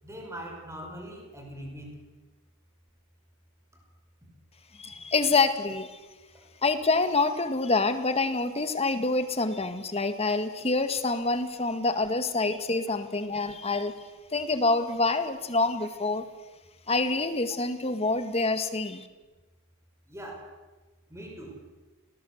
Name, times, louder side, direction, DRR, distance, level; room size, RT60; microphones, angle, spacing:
voice 1, 0.0-2.0 6.3-6.5 15.8-15.9 20.1-20.6 21.1-21.7, right 1 dB, 15° right, 2 dB, 5.7 m, -42 dB
voice 2, 4.8-6.0 6.6-14.0 14.3-16.2 16.9-19.1, left 3 dB, 30° left, 9 dB, 1.9 m, -26 dB
28.5 x 19.5 x 8.1 m, 1.2 s
head